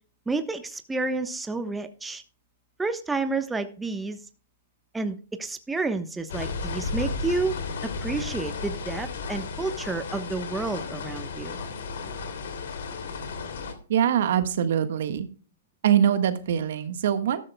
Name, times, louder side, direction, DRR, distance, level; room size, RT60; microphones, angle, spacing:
voice 1, 0.3-2.2 2.8-4.2 4.9-7.5 7.8-11.6, right 3 dB, 10° right, 8 dB, 1.1 m, -30 dB
sound 1, 6.3-13.7, left 4 dB, 65° left, 2.8 m, -33 dB
voice 2, 13.9-15.3 15.8-17.4, right 9 dB, 65° right, 10 dB, 1.5 m, -23 dB
13.0 x 13.0 x 2.3 m, 0.38 s
hypercardioid pair, 130°, 0 cm